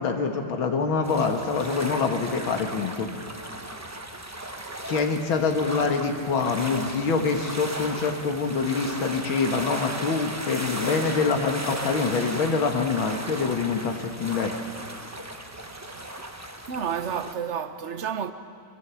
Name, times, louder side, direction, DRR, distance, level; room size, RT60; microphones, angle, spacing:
voice 1, 0.0-3.1 4.9-14.5, left 4 dB, 85° left, 2.3 m, -25 dB
sound 1, 1.0-17.3, right 1 dB, 15° right, 0.6 m, -36 dB
voice 2, 16.7-18.3, right 7 dB, 50° right, 0.9 m, -30 dB
24.0 x 23.5 x 7.1 m
omnidirectional pair, 2.2 m